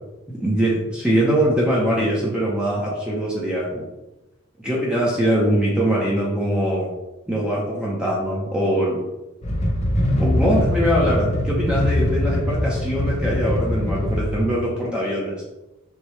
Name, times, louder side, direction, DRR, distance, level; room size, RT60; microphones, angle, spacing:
voice 1, 0.3-3.8 4.6-6.9 7.3-9.0 10.2-15.4, right 1 dB, 5° right, -5 dB, 0.7 m, -22 dB
sound 1, 9.4-14.4, left 1 dB, 35° left, 0.7 m, -22 dB
6.5 x 2.2 x 3.1 m, 1.0 s
head